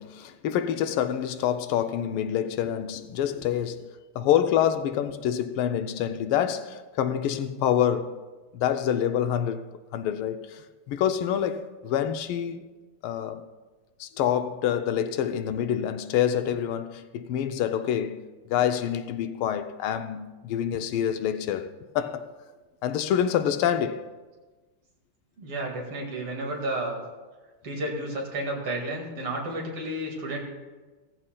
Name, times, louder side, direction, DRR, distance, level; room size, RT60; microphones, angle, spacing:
voice 1, 0.0-8.2 8.5-9.6 9.9-12.7 13.0-13.5 14.0-22.3 22.8-24.1, left 9 dB, 80° left, 1.5 m, -27 dB
voice 2, 25.4-27.0 27.6-30.4, right 1 dB, 80° right, 2.9 m, -31 dB
16.0 x 14.0 x 2.3 m
omnidirectional pair, 2.4 m